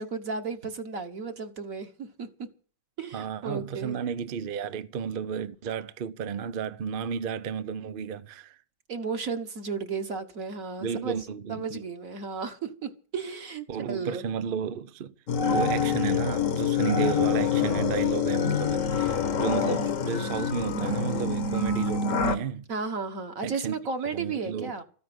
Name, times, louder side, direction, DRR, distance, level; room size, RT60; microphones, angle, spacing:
voice 1, 0.0-2.5 3.0-4.0 8.9-14.2 22.7-24.8, right 5 dB, 50° right, 1.7 m, -34 dB
voice 2, 3.1-8.6 10.8-11.8 13.7-15.1 15.5-22.6 23.4-23.7 24.1-24.7, right 7 dB, 65° right, 0.5 m, -32 dB
sound 1, 15.3-22.4, left 6 dB, 50° left, 1.3 m, -26 dB
14.0 x 9.6 x 8.0 m
omnidirectional pair, 2.0 m